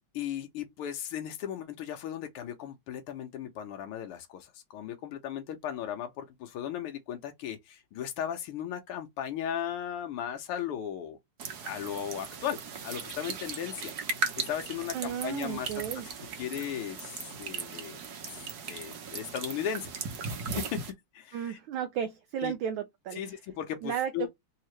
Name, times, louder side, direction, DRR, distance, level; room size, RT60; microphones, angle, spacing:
voice 1, 0.1-11.2 11.6-13.9 14.4-15.8 16.4-18.0 18.3-18.4 18.7-19.9 20.5-20.8 21.1-21.6 22.4-22.5 23.2-24.3, left 9 dB, 90° left, 1.7 m, -36 dB
sound 1, 11.4-20.9, right 5 dB, 55° right, 1.3 m, -38 dB
voice 2, 14.9-16.1 21.3-23.4 23.8-24.3, right 9 dB, 75° right, 1.2 m, -34 dB
4.0 x 2.8 x 3.1 m
omnidirectional pair, 2.4 m